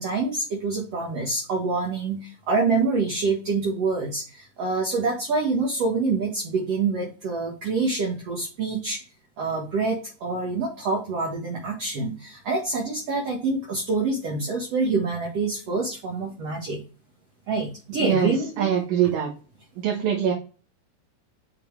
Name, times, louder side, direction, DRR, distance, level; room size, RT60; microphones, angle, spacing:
voice 1, 0.0-9.0 9.4-16.8 17.5-18.7, right 3 dB, 55° right, -3 dB, 2.3 m, -26 dB
voice 2, 18.0-19.3 19.8-20.3, right 8 dB, 90° right, -1 dB, 3.2 m, -23 dB
7.1 x 5.7 x 3.4 m, 0.35 s
omnidirectional pair, 4.0 m